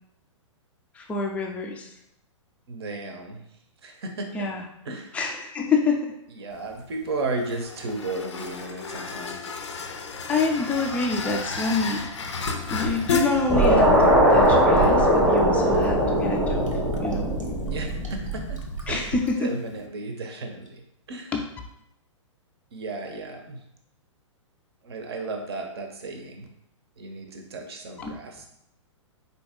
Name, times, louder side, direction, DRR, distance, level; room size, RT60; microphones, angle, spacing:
voice 1, 1.0-1.9 4.3-4.7 5.1-6.1 10.3-12.1 12.7-16.7 17.0-17.3 18.9-19.5 21.3-21.4 28.0-28.2, left 3 dB, 10° left, 1 dB, 0.4 m, -27 dB
voice 2, 2.7-3.4 3.8-4.5 4.9-5.2 6.4-9.4 17.7-18.6 18.9-20.8 21.1-21.3 22.7-23.6 24.8-26.4 27.0-28.5, right 2 dB, 55° right, 4 dB, 0.8 m, -34 dB
sound 1, 6.5-19.9, left 5 dB, 65° left, 0.5 m, -34 dB
Fill (with liquid), 11.2-19.3 20.7-20.8, right 5 dB, 90° right, 1.0 m, -35 dB
sound 2, 13.5-18.8, equal, 5° right, 0.8 m, -20 dB
4.1 x 2.8 x 3.5 m, 0.79 s
figure-of-eight pair, 110°, 16 cm